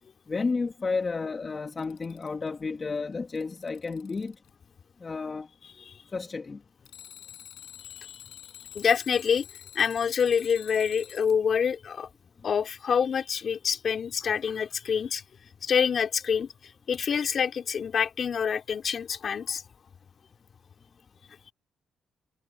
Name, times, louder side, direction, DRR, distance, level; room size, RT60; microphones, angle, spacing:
voice 1, 0.3-4.3 5.0-5.5 6.1-6.6, left 4 dB, 30° left, 1.5 m, -31 dB
Alarm, 1.5-2.5 3.1-4.5 6.9-11.4 14.7-14.8 16.9-17.0, left 12 dB, 80° left, 5.4 m, -48 dB
voice 2, 5.6-6.0 7.8-8.2 8.7-9.4 9.7-12.1 12.4-15.2 15.6-16.5 16.9-19.6, left 7 dB, 50° left, 3.1 m, -26 dB
cardioid pair, 90°, 0 cm